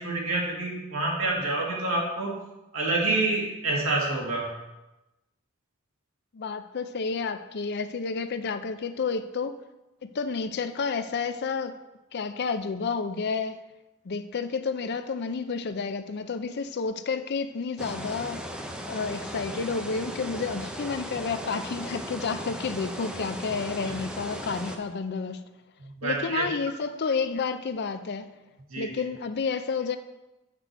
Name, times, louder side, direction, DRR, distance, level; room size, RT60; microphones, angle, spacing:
voice 1, 0.0-2.4 2.7-4.5 23.8-23.9 25.8-26.5 28.7-29.0, right 2 dB, 75° right, 1.9 m, -27 dB
voice 2, 6.3-9.6 10.0-11.8 12.1-13.6 14.0-18.5 18.9-25.4 26.0-28.3 28.8-30.0, left 5 dB, 50° left, 0.5 m, -30 dB
sound 1, 17.8-24.8, equal, 5° right, 0.6 m, -37 dB
6.6 x 6.0 x 4.6 m
head